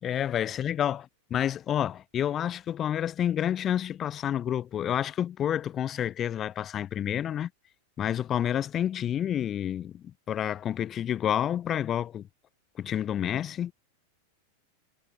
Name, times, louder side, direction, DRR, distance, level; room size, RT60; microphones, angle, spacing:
voice 1, 0.0-1.0 1.3-7.5 8.0-12.3 12.8-13.7, left 10 dB, 25° left, 3.4 m, -29 dB
figure-of-eight pair, 90°, 0 cm